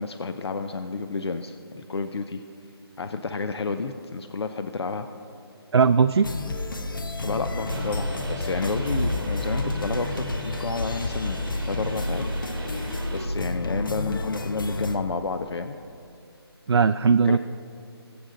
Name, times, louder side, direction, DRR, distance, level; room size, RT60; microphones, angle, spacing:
voice 1, 0.0-2.4 3.0-5.1 7.2-12.2 13.1-15.8 17.2-17.4, left 4 dB, 75° left, 8 dB, 0.7 m, -30 dB
voice 2, 5.7-6.3 16.7-17.4, right 5 dB, 80° right, 10 dB, 0.4 m, -18 dB
sound 1, 6.2-15.0, left 2 dB, 55° left, 1.0 m, -30 dB
sound 2, 7.7-13.3, right 2 dB, 50° right, 1.9 m, -38 dB
22.0 x 8.0 x 3.8 m, 2.5 s
hypercardioid pair, 180°, 14 cm